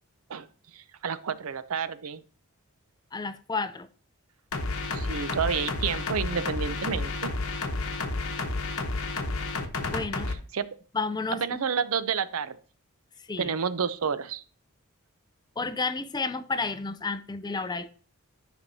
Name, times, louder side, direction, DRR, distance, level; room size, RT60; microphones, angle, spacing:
voice 1, 0.7-2.2 4.9-7.3 10.3-10.7 11.4-12.6 13.4-14.4, right 6 dB, 70° right, 0.6 m, -30 dB
voice 2, 3.1-3.9 9.9-10.3 10.9-11.4 13.3-13.5 15.6-17.9, left 4 dB, 20° left, 0.4 m, -31 dB
sound 1, 4.5-10.3, left 3 dB, 65° left, 1.0 m, -31 dB
10.5 x 6.1 x 2.7 m
head